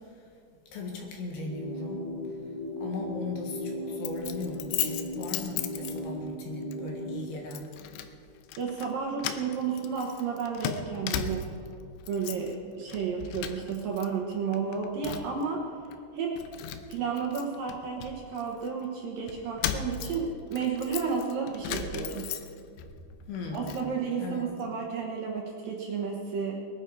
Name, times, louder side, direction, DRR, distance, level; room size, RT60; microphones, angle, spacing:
voice 1, 0.7-2.0 2.8-7.7 23.3-23.8 24.2-24.5, left 3 dB, 65° left, 0 dB, 3.4 m, -38 dB
sound 1, 1.4-7.4, equal, 10° right, 2.1 m, -37 dB
Keys jangling, 4.1-6.4 6.7-6.9 7.5-8.1 8.4-8.9 9.2-11.7 12.0-12.6 12.9-14.1 14.3-15.4 15.9-16.0 16.4-18.7 19.3-22.8 23.2-23.9, left 10 dB, 85° left, 2.9 m, -36 dB
voice 2, 8.6-11.5 12.1-15.7 16.1-16.3 16.9-22.3 23.5-26.6, right 6 dB, 65° right, -1 dB, 2.5 m, -32 dB
21.0 x 11.0 x 4.8 m, 2.3 s
omnidirectional pair, 5.3 m